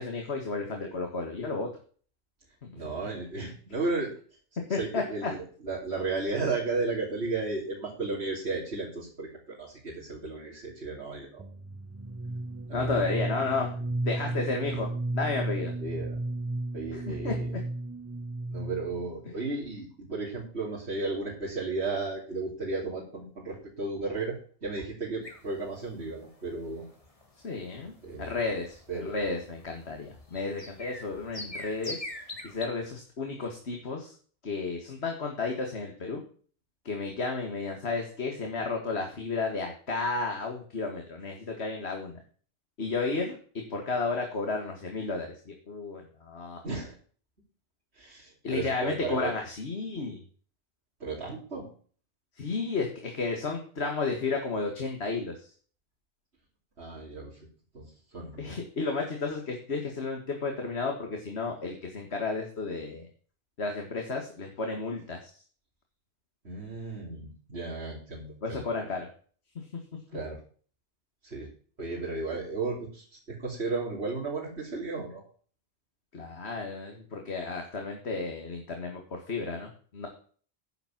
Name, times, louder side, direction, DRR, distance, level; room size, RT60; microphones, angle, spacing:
voice 1, 0.0-1.7 2.6-2.7 3.4-3.5 4.7-5.3 12.7-15.7 16.9-17.3 27.4-34.1 34.4-36.2 36.9-42.2 42.8-46.6 48.4-50.2 52.4-55.5 58.4-63.1 63.6-65.4 68.4-69.1 69.6-70.0 76.1-80.1, left 3 dB, 85° left, 3 dB, 2.0 m, -33 dB
voice 2, 2.7-4.1 4.7-11.5 12.7-13.0 15.8-16.2 16.7-17.5 18.5-24.4 24.6-26.9 28.0-28.3 28.9-29.1 46.6-46.9 48.0-49.3 51.0-51.7 56.8-57.4 57.7-58.5 66.4-68.7 70.1-70.4 71.2-71.5 71.8-75.2, right 3 dB, 90° right, -7 dB, 3.6 m, -34 dB
sound 1, 11.4-19.1, right 2 dB, 20° right, 0.5 m, -34 dB
sound 2, 25.2-32.7, left 1 dB, 35° left, 2.2 m, -44 dB
10.5 x 7.3 x 5.9 m, 0.44 s
omnidirectional pair, 1.1 m